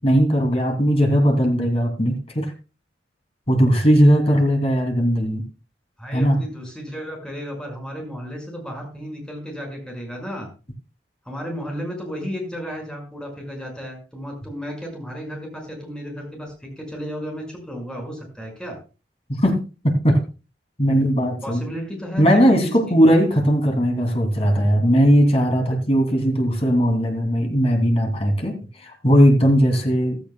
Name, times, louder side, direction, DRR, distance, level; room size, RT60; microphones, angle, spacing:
voice 1, 0.0-2.5 3.5-5.4 6.1-6.4 19.3-19.6 19.8-20.2 20.8-21.6 22.2-30.2, equal, 35° left, 3 dB, 2.8 m, -18 dB
voice 2, 6.0-10.5 11.3-18.8 21.4-23.0, equal, 5° left, 0 dB, 5.6 m, -33 dB
15.0 x 14.5 x 2.3 m, 0.31 s
head